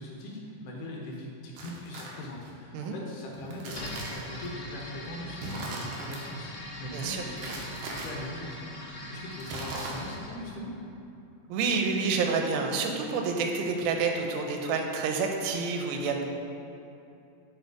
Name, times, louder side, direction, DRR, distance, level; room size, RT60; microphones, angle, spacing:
voice 1, 0.0-8.8 9.1-10.8, left 1 dB, 75° left, -2 dB, 2.1 m, -41 dB
sound 1, 1.6-2.5 3.3-4.5 5.3-6.2 7.4-8.1 9.4-10.3, right 2 dB, 70° right, 2.3 m, -39 dB
sound 2, 3.7-10.4, left 1 dB, 50° left, 1.8 m, -42 dB
voice 2, 6.9-7.2 11.5-16.3, right 4 dB, 90° right, 3 dB, 2.5 m, -28 dB
7.8 x 4.4 x 4.7 m, 2.7 s
omnidirectional pair, 4.2 m